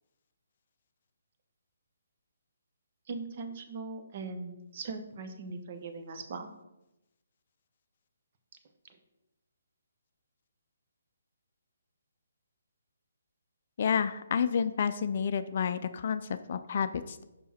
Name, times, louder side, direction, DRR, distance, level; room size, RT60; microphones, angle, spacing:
voice 1, 3.1-6.5, right 4 dB, 45° right, 7 dB, 0.9 m, -40 dB
voice 2, 13.8-17.2, left 7 dB, 50° left, 12 dB, 0.4 m, -30 dB
6.0 x 5.5 x 4.3 m, 0.93 s
figure-of-eight pair, 140°, 0 cm